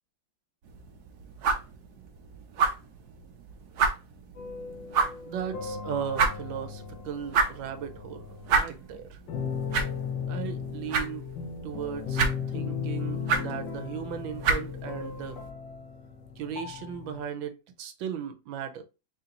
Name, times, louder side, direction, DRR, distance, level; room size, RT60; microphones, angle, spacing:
sound 1, 0.7-15.5, right 4 dB, 65° right, 1.1 m, -31 dB
sound 2, 4.4-8.7 9.3-17.2, left 6 dB, 75° left, 1.5 m, -36 dB
voice 1, 5.3-9.2 10.3-11.3 11.6-15.4 16.4-18.8, right 8 dB, 80° right, 1.5 m, -37 dB
3.6 x 2.9 x 3.7 m
omnidirectional pair, 2.0 m